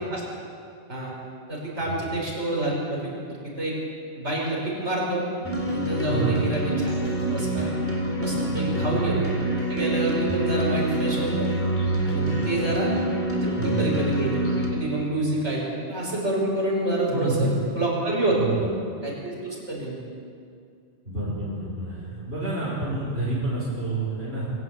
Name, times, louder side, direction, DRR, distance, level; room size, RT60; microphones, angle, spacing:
voice 1, 1.5-3.7 4.2-5.2 5.7-6.9 7.3-7.7 8.2-9.3 9.7-11.5 12.0-12.9 13.4-14.4 14.7-17.5 17.7-18.7 19.0-20.0, right 2 dB, 80° right, -4 dB, 6.2 m, -27 dB
sound 1, 5.4-14.7, right 1 dB, 10° left, 3.3 m, -26 dB
voice 2, 6.1-6.5 8.5-8.9 12.3-12.7 13.6-13.9 17.1-17.5 18.3-18.7 21.1-24.5, right 2 dB, 65° right, -6 dB, 5.3 m, -29 dB
23.0 x 17.5 x 8.0 m, 2.3 s
omnidirectional pair, 1.2 m